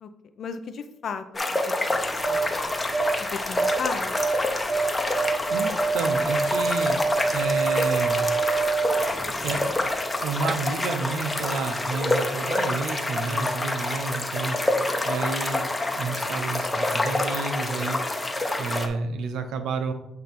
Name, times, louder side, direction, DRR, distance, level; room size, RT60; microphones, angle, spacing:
voice 1, 0.4-2.8 3.3-4.1, left 6 dB, 60° left, 8 dB, 0.7 m, -36 dB
sound 1, 1.3-18.9, left 2 dB, 15° left, 0.9 m, -27 dB
sound 2, 1.9-10.1 10.4-10.5, right 4 dB, 35° right, 0.9 m, -27 dB
voice 2, 5.5-7.0 7.3-8.2 9.4-9.7 10.2-14.6 15.0-18.0 18.6-19.9, right 4 dB, 85° right, 8 dB, 0.8 m, -30 dB
8.1 x 2.8 x 5.3 m, 0.87 s
cardioid pair, 90°, 0 cm